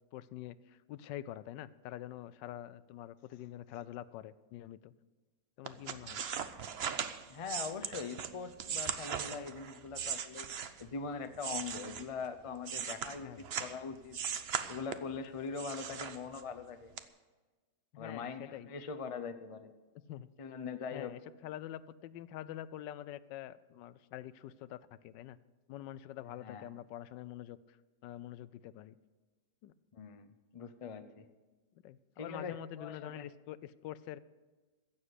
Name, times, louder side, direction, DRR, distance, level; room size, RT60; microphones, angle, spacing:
voice 1, 0.1-4.9 5.6-6.2 13.2-13.5 17.9-18.7 20.1-20.3 20.9-25.4 25.7-27.8 28.0-29.0 29.6-29.7 31.8-34.2, left 12 dB, 90° left, 17 dB, 1.3 m, -46 dB
sound 1, 5.6-10.9 11.3-13.8 14.1-15.2 15.6-16.6 17.0-17.1, right 7 dB, 55° right, 0.7 m, -39 dB
voice 2, 7.3-10.5 10.8-14.2 14.7-16.9 18.0-19.7 20.4-21.1 26.4-26.7 29.9-30.3 30.5-31.3 32.2-33.3, left 5 dB, 50° left, 9 dB, 0.4 m, -42 dB
15.5 x 7.3 x 8.2 m, 1.3 s
omnidirectional pair, 1.9 m